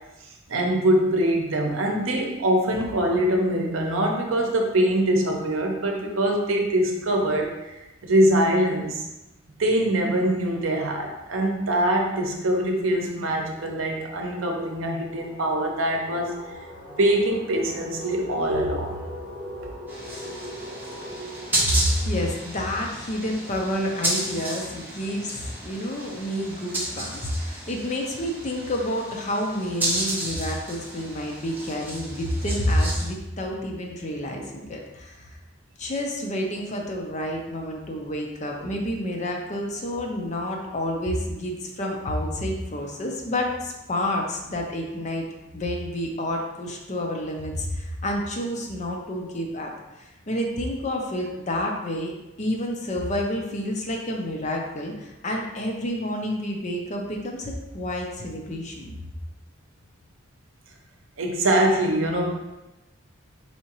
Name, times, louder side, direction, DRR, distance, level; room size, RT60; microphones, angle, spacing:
voice 1, 0.5-7.8 8.0-9.1 9.6-16.3 17.0-19.0 38.6-38.7 61.2-62.3, right 1 dB, 75° right, 1 dB, 0.7 m, -23 dB
sound 1, 11.3-11.5 11.8-23.4, equal, 60° right, 1.1 m, -41 dB
sound 2, 19.9-33.1, right 1 dB, 10° right, 0.7 m, -32 dB
voice 2, 21.6-35.4 35.8-45.3 45.5-52.1 52.4-58.9, left 1 dB, 35° left, 1 dB, 0.5 m, -29 dB
4.3 x 3.6 x 2.9 m, 1.0 s
head